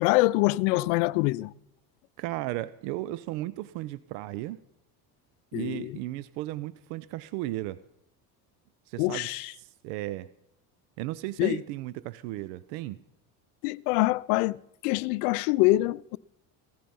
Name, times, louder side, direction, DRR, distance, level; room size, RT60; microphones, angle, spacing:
voice 1, 0.0-1.5 5.5-6.0 9.0-9.5 11.4-11.6 13.6-16.2, left 20 dB, 75° left, 0.7 m, -25 dB
voice 2, 2.2-4.6 5.5-7.8 8.9-10.3 11.0-13.0, right 16 dB, 70° right, 0.7 m, -35 dB
17.0 x 14.5 x 5.5 m
hypercardioid pair, 75°, 46 cm